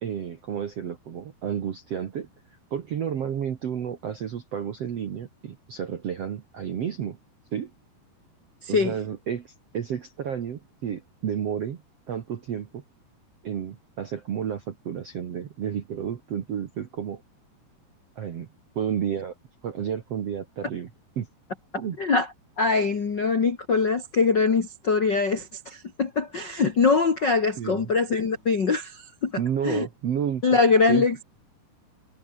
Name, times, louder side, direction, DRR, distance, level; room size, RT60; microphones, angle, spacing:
voice 1, 0.0-2.3 2.7-7.2 7.5-7.7 8.7-11.8 12.1-12.8 13.4-17.2 18.2-18.5 18.7-19.3 19.6-20.9 21.2-21.3 21.8-22.0 27.6-27.9 29.4-31.0, right 8 dB, 60° right, 1.6 m, -31 dB
voice 2, 8.6-8.9 22.0-22.3 22.6-29.3 29.6-29.9 30.4-31.2, left 4 dB, 55° left, 1.2 m, -23 dB
omnidirectional pair, 5.0 m